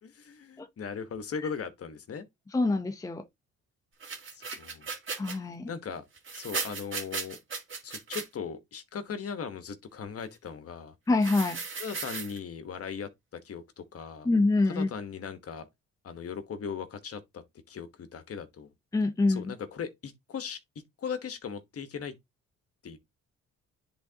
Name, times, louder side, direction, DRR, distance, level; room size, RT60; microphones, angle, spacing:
voice 1, 0.0-2.2 4.3-4.9 5.7-6.0 6.4-7.4 7.8-10.9 11.8-14.3 14.6-15.7 16.0-18.7 19.3-22.2 22.8-23.0, left 6 dB, 50° left, 1.2 m, -38 dB
voice 2, 2.5-3.2 5.2-5.7 11.1-11.6 14.2-14.9 18.9-19.5, left 3 dB, 10° left, 0.6 m, -25 dB
sound 1, 4.0-5.4 6.2-8.3 11.2-12.4, right 4 dB, 40° right, 2.1 m, -36 dB
10.0 x 3.7 x 2.8 m
cardioid pair, 90°, 30 cm